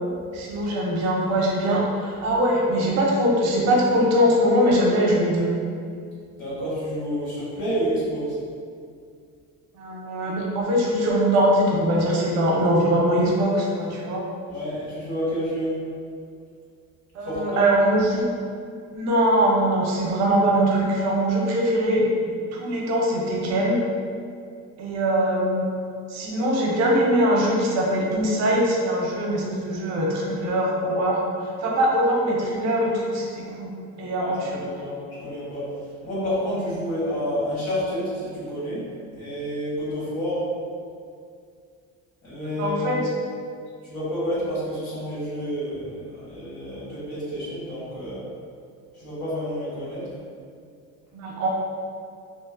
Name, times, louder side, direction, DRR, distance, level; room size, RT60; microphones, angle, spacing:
voice 1, 0.3-5.5 9.8-14.2 17.1-18.3 18.9-23.8 24.8-25.7 26.1-31.2 31.6-33.7 34.0-34.6 42.6-43.0 51.1-51.5, equal, 60° right, -2 dB, 0.5 m, -22 dB
voice 2, 6.4-8.4 14.5-15.8 17.3-17.7 34.2-35.7 36.0-38.9 39.1-40.4 42.2-43.1 43.8-48.2 49.0-50.1, equal, 65° left, -10 dB, 1.4 m, -29 dB
2.8 x 2.0 x 2.4 m, 2.3 s
cardioid pair, 155°, 31 cm